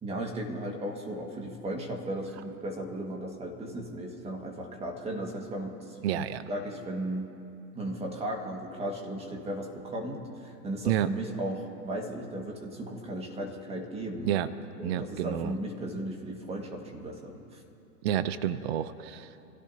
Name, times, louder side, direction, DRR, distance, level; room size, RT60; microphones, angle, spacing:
voice 1, 0.0-7.3 7.7-14.3 14.8-17.6, right 1 dB, 10° right, 1 dB, 1.8 m, -36 dB
voice 2, 6.0-6.4 10.8-11.1 14.2-14.5 14.8-15.5 18.0-19.3, right 11 dB, 40° right, 13 dB, 0.7 m, -29 dB
28.0 x 16.0 x 2.9 m, 2.7 s
hypercardioid pair, 140°, 49 cm